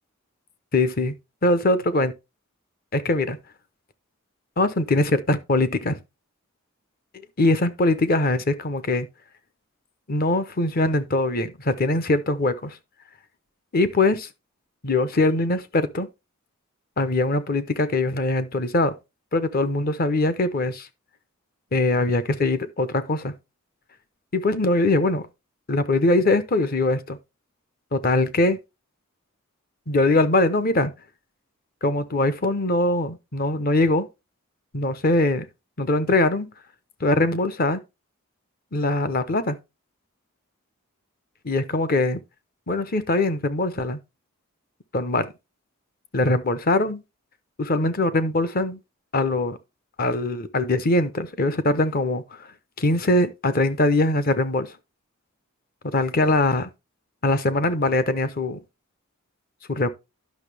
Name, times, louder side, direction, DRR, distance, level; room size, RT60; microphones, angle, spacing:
voice 1, 0.7-1.1 1.4-2.1 2.9-3.4 4.6-6.0 7.4-9.1 10.1-12.8 13.7-14.3 14.8-16.1 17.0-19.0 19.3-20.9 21.7-23.3 24.3-25.3 25.7-27.2 27.9-28.6 29.9-30.9 31.8-34.1 34.7-35.5 35.8-36.5 37.0-37.8 38.7-39.6 41.4-42.2 42.7-44.0 44.9-45.3 46.1-47.0 47.6-48.8 49.1-49.6 50.0-52.2 52.8-54.7 55.8-56.7 57.2-58.6 59.7-59.9, left 2 dB, 40° left, 0.8 m, -22 dB
10.5 x 6.1 x 3.4 m
head